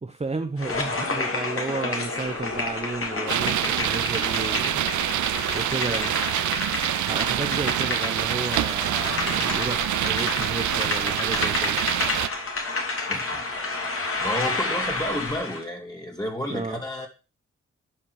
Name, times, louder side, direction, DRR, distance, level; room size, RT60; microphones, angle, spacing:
voice 1, 0.0-4.8 5.5-6.1 7.0-11.8 16.5-16.8, right 3 dB, 20° right, 7 dB, 0.9 m, -32 dB
sound 1, 0.6-15.6, left 3 dB, 50° left, 2.6 m, -30 dB
sound 2, 3.3-12.3, right 12 dB, 80° right, 0.5 m, -26 dB
voice 2, 13.1-13.4 13.9-17.1, left 1 dB, 15° left, 0 dB, 2.5 m, -31 dB
11.5 x 5.6 x 4.8 m, 0.32 s
cardioid pair, 55°, 29 cm